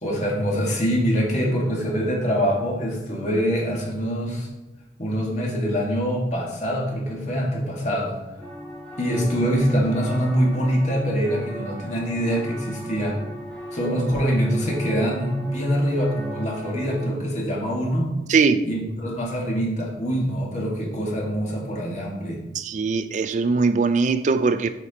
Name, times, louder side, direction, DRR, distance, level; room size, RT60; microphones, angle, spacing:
voice 1, 0.0-4.5 5.0-8.1 9.0-13.2 13.7-18.1 18.6-22.4, equal, 40° left, 2.1 m, -24 dB
sound 1, 8.4-17.0, right 1 dB, 10° left, 1.9 m, -37 dB
voice 2, 18.3-18.6 22.5-24.7, right 4 dB, 45° right, 0.4 m, -21 dB
8.4 x 5.1 x 4.2 m
head